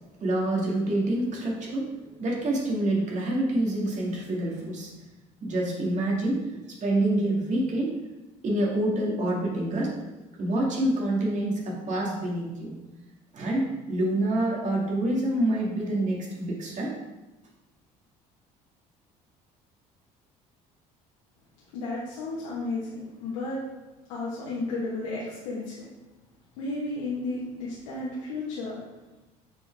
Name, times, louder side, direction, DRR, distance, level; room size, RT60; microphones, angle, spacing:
voice 1, 0.2-4.9 5.4-6.5 6.8-8.0 8.4-10.0 10.4-12.8 13.3-16.9, right 1 dB, 45° right, -3 dB, 2.2 m, -27 dB
voice 2, 21.7-23.6 24.1-25.8 26.6-28.8, left 2 dB, 90° left, -6 dB, 1.4 m, -33 dB
6.8 x 4.7 x 3.5 m, 1.1 s
supercardioid pair, 80°, 17 cm